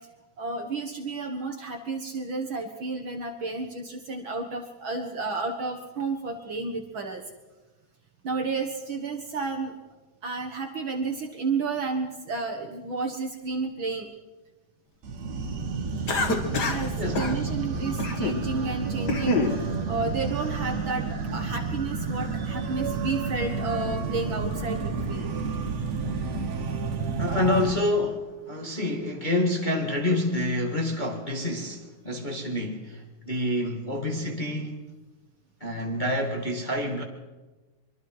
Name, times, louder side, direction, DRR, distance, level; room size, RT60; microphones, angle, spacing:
voice 1, 0.4-7.2 8.2-9.7 10.2-14.1 16.6-25.3, right 3 dB, 50° right, 3 dB, 2.0 m, -31 dB
sound 1, 15.0-27.7, right 4 dB, 70° right, 2.9 m, -30 dB
Cough, 16.1-16.9 17.1-17.4 18.0-18.4 18.9-19.6, left 3 dB, 40° left, 2.1 m, -26 dB
voice 2, 17.0-17.3 27.2-34.8 35.6-37.0, left 1 dB, 20° left, 1 dB, 1.8 m, -28 dB
24.5 x 24.5 x 4.8 m, 1.2 s
omnidirectional pair, 3.3 m